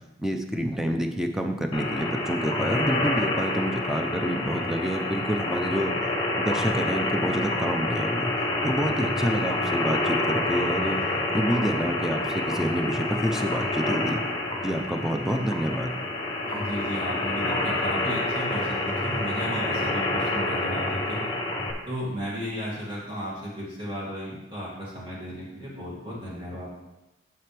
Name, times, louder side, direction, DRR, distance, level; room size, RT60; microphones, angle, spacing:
voice 1, 0.2-5.9 6.4-8.3 8.6-11.0 11.3-14.2 14.6-16.0, equal, 5° right, 4 dB, 0.6 m, -27 dB
sound 1, 1.7-21.7, left 2 dB, 25° left, 1.1 m, -28 dB
voice 2, 10.8-11.3 16.5-21.2 21.9-26.7, equal, 30° right, -7 dB, 2.3 m, -34 dB
7.7 x 6.9 x 3.4 m, 0.97 s
head